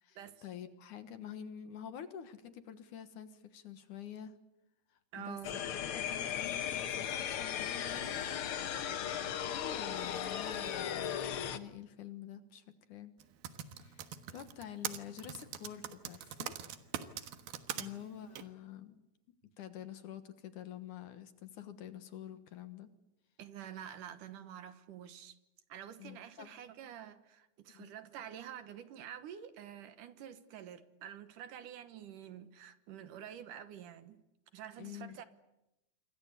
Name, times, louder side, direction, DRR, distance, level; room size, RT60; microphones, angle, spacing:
voice 1, 0.0-4.4 4.9-8.3 9.4-11.2 11.5-13.2 13.7-16.6 17.1-17.4 17.8-19.0 19.4-22.9 26.0-26.6 27.7-28.0 34.8-35.2, left 10 dB, 65° left, 2.7 m, -48 dB
voice 2, 5.1-5.6 17.8-17.9 23.4-25.4 25.7-34.2 34.5-35.2, right 9 dB, 70° right, 2.6 m, -48 dB
sound 1, 5.4-11.6, left 9 dB, 80° left, 1.2 m, -37 dB
Typing, 13.2-17.8 18.4-18.5, right 10 dB, 85° right, 3.2 m, -41 dB
27.5 x 24.5 x 8.2 m
omnidirectional pair, 4.2 m